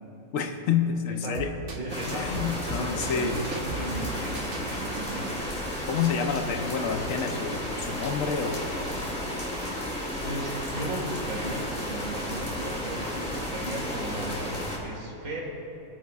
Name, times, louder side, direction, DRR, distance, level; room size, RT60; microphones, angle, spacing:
voice 1, 0.3-1.6 2.1-3.4 5.9-8.7 14.1-14.8, left 6 dB, 70° left, 6 dB, 1.1 m, -29 dB
sound 1, 1.3-2.1 2.3-4.9, right 3 dB, 45° right, 1.0 m, -36 dB
voice 2, 1.8-5.5 10.2-14.4 14.8-15.4, right 1 dB, 80° right, -1 dB, 2.3 m, -36 dB
sound 2, 1.9-14.8, left 1 dB, 5° left, 2.7 m, -33 dB
22.5 x 9.4 x 2.4 m, 2.9 s
omnidirectional pair, 1.5 m